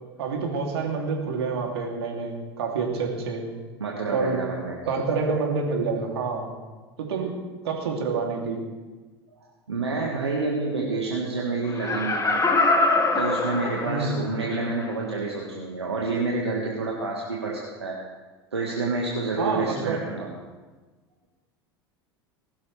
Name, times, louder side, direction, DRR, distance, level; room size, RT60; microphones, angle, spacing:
voice 1, 0.2-3.4 4.1-4.4 4.8-6.5 7.0-7.3 7.6-8.6 13.8-14.2 19.4-20.0, right 4 dB, 75° right, 0 dB, 2.9 m, -27 dB
voice 2, 3.8-5.0 9.7-12.3 12.6-12.8 13.1-18.0 18.5-20.3, right 3 dB, 90° right, -2 dB, 1.7 m, -28 dB
Laughter, 11.7-14.3 14.8-14.9, left 2 dB, 25° left, 1.9 m, -23 dB
20.5 x 12.0 x 3.4 m, 1.3 s
hypercardioid pair, 80°, 14 cm